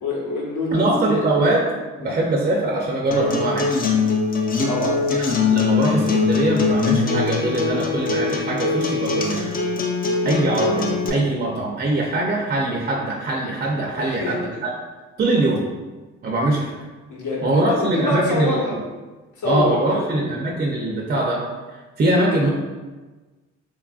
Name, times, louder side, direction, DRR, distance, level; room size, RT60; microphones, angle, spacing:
voice 1, 0.0-1.3 2.0-2.2 4.7-5.0 14.0-14.6 17.1-18.8 19.4-20.2, left 2 dB, 80° left, -4 dB, 0.9 m, -25 dB
voice 2, 0.7-1.7 2.0-3.8 5.2-9.5 10.2-14.7 15.2-15.6 16.2-16.7 17.4-18.6 19.4-21.4 22.0-22.5, right 2 dB, 30° right, -1 dB, 0.4 m, -22 dB
Acoustic guitar, 3.1-11.1, left 4 dB, 30° left, 0.4 m, -22 dB
3.0 x 2.4 x 2.3 m, 1.3 s
cardioid pair, 90°, 30 cm